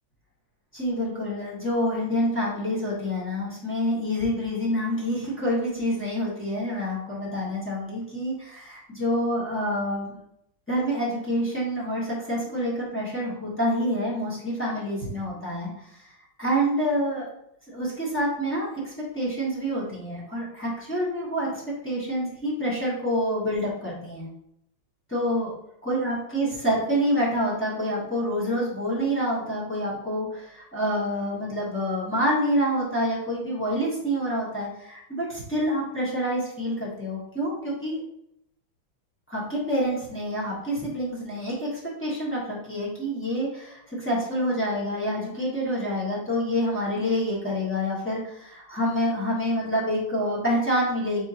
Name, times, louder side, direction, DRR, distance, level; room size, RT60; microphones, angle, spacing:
voice 1, 0.7-10.2 10.7-16.1 16.4-17.2 17.7-24.3 25.1-25.5 25.8-38.0 39.3-51.2, equal, 10° left, -7 dB, 0.6 m, -27 dB
4.3 x 3.6 x 2.8 m, 0.76 s
omnidirectional pair, 2.3 m